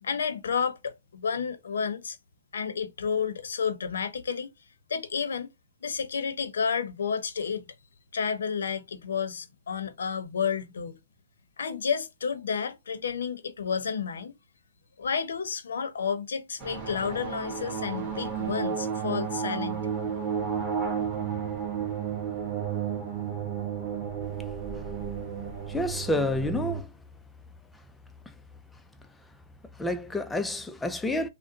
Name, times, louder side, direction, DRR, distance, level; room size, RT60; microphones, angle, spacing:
voice 1, 0.0-2.2 2.5-4.5 4.9-5.5 5.8-7.7 8.1-11.0 11.6-14.3 15.0-19.9, left 6 dB, 80° left, 0.7 m, -31 dB
sound 1, 16.6-26.8, right 7 dB, 15° right, 1.5 m, -32 dB
voice 2, 25.7-26.9 28.3-28.4 29.7-31.3, left 1 dB, 5° left, 0.4 m, -29 dB
3.7 x 2.1 x 3.8 m
hypercardioid pair, 145°, 0 cm